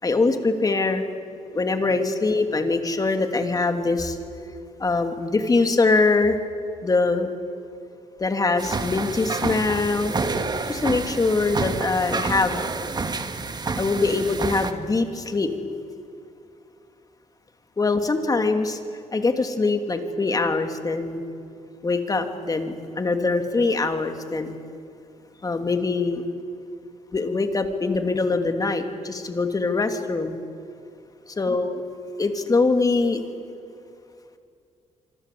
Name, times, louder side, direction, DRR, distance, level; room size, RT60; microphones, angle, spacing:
voice 1, 0.0-1.0 1.5-4.2 4.8-6.4 6.8-7.3 8.2-10.1 10.7-12.6 13.8-15.5 17.8-18.8 19.1-21.2 21.8-24.6 25.4-26.3 27.1-30.4 31.4-31.8 32.2-33.2, left 3 dB, 30° left, 6 dB, 2.8 m, -23 dB
sound 1, 8.6-14.7, right 3 dB, 35° right, 2.1 m, -28 dB
26.0 x 25.5 x 8.5 m, 2.4 s
cardioid pair, 90°, 13 cm